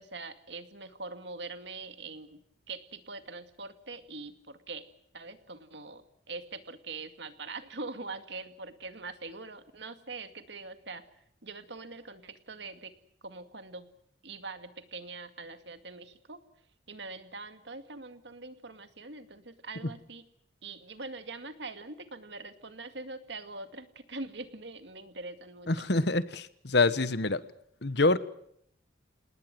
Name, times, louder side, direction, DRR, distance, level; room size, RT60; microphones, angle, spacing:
voice 1, 0.0-2.4 2.7-4.9 5.1-11.0 11.4-12.9 13.2-13.9 14.2-16.4 16.9-20.2 20.6-25.7, right 3 dB, 60° right, 9 dB, 2.2 m, -43 dB
voice 2, 25.7-27.4 27.8-28.2, left 3 dB, 60° left, 14 dB, 1.2 m, -26 dB
28.0 x 19.5 x 7.7 m, 0.70 s
head